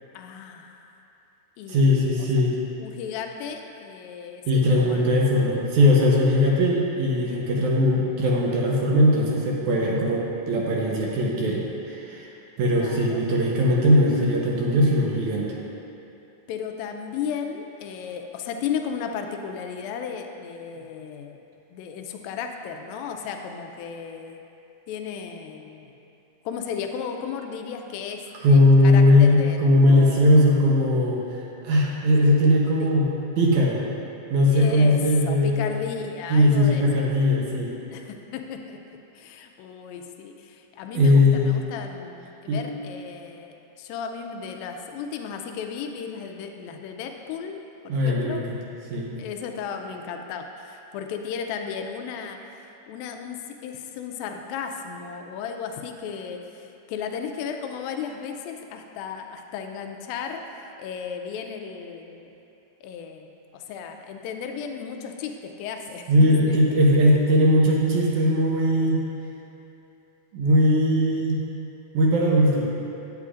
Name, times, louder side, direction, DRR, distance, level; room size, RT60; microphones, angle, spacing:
voice 1, 0.1-0.9 1.6-2.3 2.8-5.1 12.7-13.2 16.5-21.4 21.7-24.4 24.9-25.9 26.5-30.3 32.8-32.9 34.5-36.8 37.9-47.6 47.8-48.5 49.2-60.4 60.8-62.3 62.8-66.6 67.1-67.2, left 7 dB, 85° left, 4 dB, 2.3 m, -35 dB
voice 2, 1.7-2.5 4.5-12.3 12.6-15.5 28.4-31.2 31.6-33.1 33.4-33.8 34.3-35.7 36.3-37.7 41.0-41.6 42.5-42.6 47.9-48.4 48.9-49.1 66.1-69.0 70.3-71.4 71.9-72.7, left 1 dB, 75° right, -3 dB, 2.0 m, -19 dB
9.6 x 8.2 x 2.5 m, 2.8 s
omnidirectional pair, 4.0 m